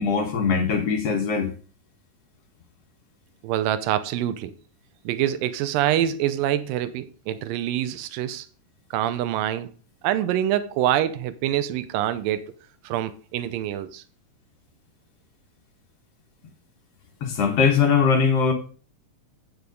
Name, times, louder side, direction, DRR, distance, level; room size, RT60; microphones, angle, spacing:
voice 1, 0.0-1.5 17.2-18.5, left 6 dB, 60° left, 1.9 m, -21 dB
voice 2, 3.4-4.5 5.1-8.5 8.9-9.7 10.0-12.5 12.8-14.0, right 11 dB, 85° right, 2.4 m, -25 dB
8.9 x 6.5 x 5.2 m
omnidirectional pair, 3.9 m